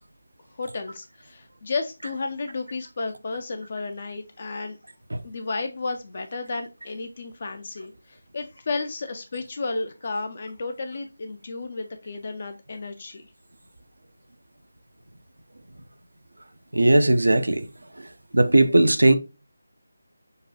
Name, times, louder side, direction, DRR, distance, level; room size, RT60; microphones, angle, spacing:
voice 1, 0.6-4.8 5.2-13.2, left 3 dB, 40° left, 0.4 m, -32 dB
voice 2, 16.7-17.7 18.0-18.1 18.3-19.1, right 2 dB, 65° right, 0.4 m, -18 dB
6.5 x 2.2 x 2.8 m
figure-of-eight pair, 160°, 0 cm